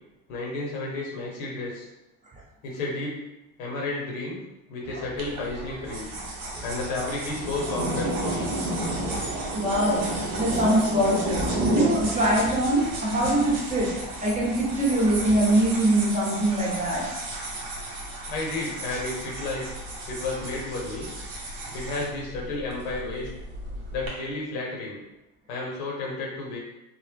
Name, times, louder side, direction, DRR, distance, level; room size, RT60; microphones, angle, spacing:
voice 1, 0.3-1.9 2.6-3.2 3.6-4.4 4.7-6.1 6.6-8.5 10.3-10.5 18.3-19.7 20.1-21.1 21.7-23.3 23.9-25.0 25.5-26.6, left 2 dB, 70° left, -2 dB, 0.9 m, -32 dB
Thunder, 4.8-16.1, right 1 dB, 35° right, 0.8 m, -32 dB
sound 1, 5.2-24.1, right 2 dB, 65° right, 0.9 m, -36 dB
voice 2, 9.5-17.1, right 1 dB, 15° right, -5 dB, 0.9 m, -23 dB
2.1 x 2.0 x 3.3 m, 0.92 s
hypercardioid pair, 80°, 43 cm